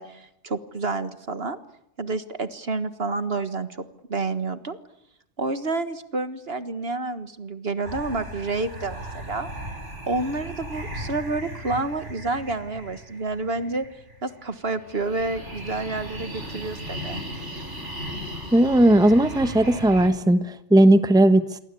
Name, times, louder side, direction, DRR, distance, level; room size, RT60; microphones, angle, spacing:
voice 1, 0.0-1.6 2.0-3.8 4.1-4.8 5.4-9.5 10.1-13.9 14.2-17.2, right 3 dB, 55° right, 11 dB, 1.8 m, -29 dB
sound 1, 7.8-20.1, equal, 75° right, 6.0 m, -37 dB
voice 2, 18.5-21.6, right 1 dB, 5° right, 11 dB, 1.1 m, -17 dB
27.5 x 23.5 x 8.5 m, 0.77 s
omnidirectional pair, 1.2 m